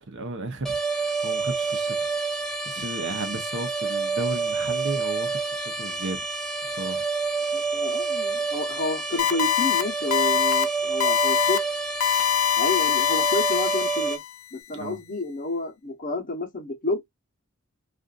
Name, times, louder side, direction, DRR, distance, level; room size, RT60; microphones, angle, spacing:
voice 1, 0.1-2.1 2.7-6.2 6.7-7.1 14.7-15.0, right 3 dB, 60° right, 0.8 m, -34 dB
sound 1, 0.7-14.2, right 4 dB, ahead, 0.3 m, -28 dB
voice 2, 7.5-11.6 12.6-14.2 14.5-17.0, left 2 dB, 40° left, 0.9 m, -30 dB
sound 2, 9.2-9.8 10.1-10.6 11.0-11.6 12.0-14.3, left 9 dB, 85° left, 0.4 m, -23 dB
2.5 x 2.5 x 2.3 m
head